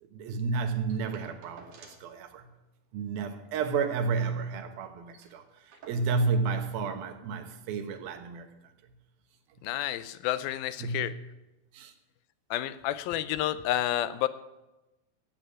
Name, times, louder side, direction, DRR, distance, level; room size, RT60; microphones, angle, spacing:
voice 1, 0.0-2.5 2.9-8.7 10.8-11.1 11.7-11.9, right 4 dB, 80° right, 3.1 m, -31 dB
sound 1, 0.9-2.2 2.5-2.6 2.9-3.1 3.5-4.5 4.8-4.9 5.1-6.4 7.3-7.4, right 4 dB, 60° right, 3.7 m, -55 dB
voice 2, 9.6-11.2 12.5-14.3, left 13 dB, 85° left, 2.5 m, -30 dB
14.0 x 8.8 x 9.4 m
omnidirectional pair, 4.2 m